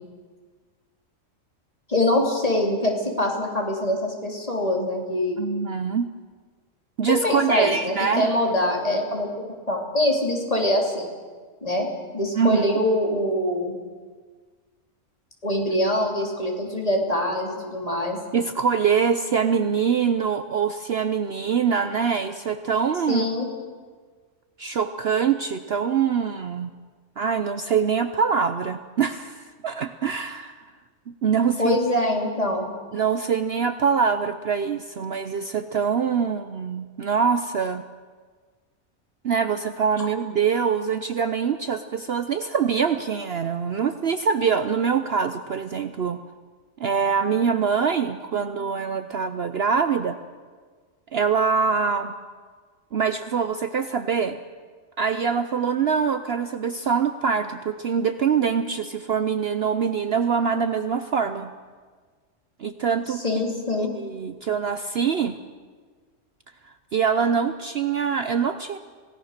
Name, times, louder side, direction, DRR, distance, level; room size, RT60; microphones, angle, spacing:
voice 1, 1.9-5.4 7.2-11.1 11.6-11.9 12.1-13.7 15.4-18.2 23.1-23.5 31.6-32.7 63.2-63.9, left 1 dB, 25° left, 0 dB, 3.4 m, -24 dB
voice 2, 5.4-6.1 7.0-8.3 12.4-12.7 18.3-23.2 24.6-26.7 27.2-30.7 31.2-31.8 32.9-37.8 39.2-46.2 46.8-50.2 51.1-52.1 52.9-54.4 55.0-61.5 62.6-63.2 63.8-65.4 66.6-68.8, right 6 dB, 55° right, 10 dB, 0.9 m, -24 dB
26.5 x 18.0 x 6.6 m, 1.5 s
omnidirectional pair, 1.4 m